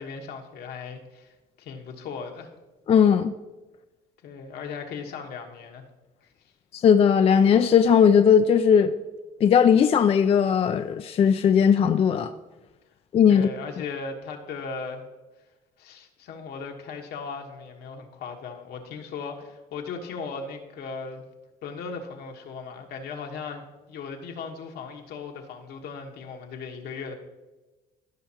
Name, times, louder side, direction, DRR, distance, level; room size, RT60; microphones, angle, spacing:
voice 1, 0.0-2.5 4.2-5.8 6.2-6.3 13.3-15.0 15.8-21.2 21.6-27.2, left 5 dB, 70° left, 3 dB, 1.3 m, -37 dB
voice 2, 2.9-3.3 6.7-8.9 9.4-12.3 13.1-13.5, left 7 dB, 35° left, 9 dB, 0.3 m, -18 dB
15.0 x 5.8 x 2.9 m, 1.1 s
cardioid pair, 110°, 17 cm